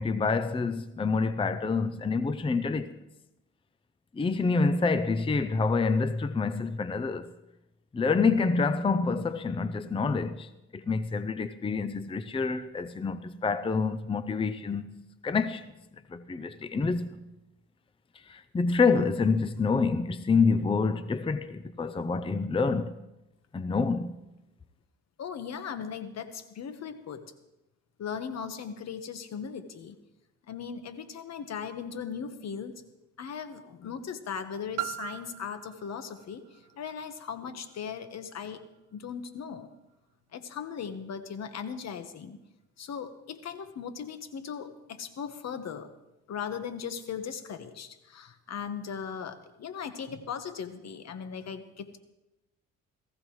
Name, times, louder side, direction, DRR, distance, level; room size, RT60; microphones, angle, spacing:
voice 1, 0.0-3.0 4.1-7.3 7.9-14.8 15.2-15.6 16.1-17.1 18.3-22.9 23.5-24.2, left 4 dB, 20° left, 0.6 m, -27 dB
voice 2, 25.2-27.3 28.0-30.0 30.5-32.8 33.2-38.6 38.9-39.7 40.3-42.4 42.8-45.9 46.3-52.0, left 7 dB, 60° left, 1.3 m, -38 dB
Piano, 34.8-40.2 40.9-41.0, right 16 dB, 80° right, 0.5 m, -43 dB
18.5 x 15.0 x 3.2 m
cardioid pair, 90°, 30 cm